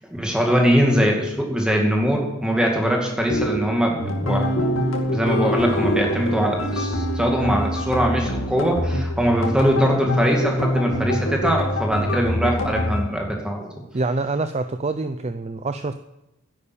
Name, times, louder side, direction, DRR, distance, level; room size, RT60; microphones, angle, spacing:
voice 1, 0.1-4.5 5.1-13.7, equal, 5° right, 0 dB, 2.3 m, -22 dB
sound 1, 3.3-7.0, right 1 dB, 50° left, 1.9 m, -29 dB
sound 2, 4.0-13.1, left 1 dB, 70° left, 2.5 m, -25 dB
voice 2, 13.9-15.9, right 3 dB, 30° right, 9 dB, 0.5 m, -26 dB
10.5 x 8.8 x 8.6 m, 0.90 s
head